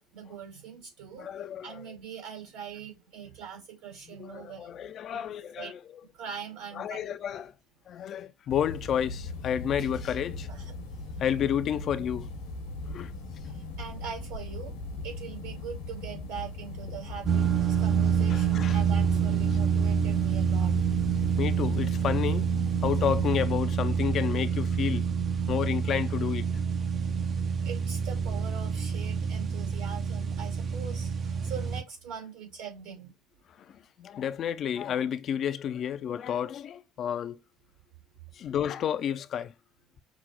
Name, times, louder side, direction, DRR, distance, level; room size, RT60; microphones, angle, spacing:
voice 1, 0.0-1.3 1.6-4.7 5.1-5.3 5.6-5.7 6.1-7.0 10.5-10.6 13.4-20.7 27.6-33.1, right 7 dB, 70° right, 2.3 m, -42 dB
voice 2, 1.2-1.9 4.1-5.8 6.7-7.5 7.9-10.5 11.2-12.3 12.8-13.1 18.3-18.8 21.4-22.5 22.8-25.1 25.5-26.5 33.7-37.4 38.3-39.5, left 9 dB, 50° left, 0.4 m, -31 dB
sound 1, 8.5-23.4, left 2 dB, 80° left, 1.1 m, -39 dB
sound 2, 17.2-31.8, right 7 dB, 45° right, 0.6 m, -27 dB
5.9 x 2.0 x 4.2 m
hypercardioid pair, 65°, 0 cm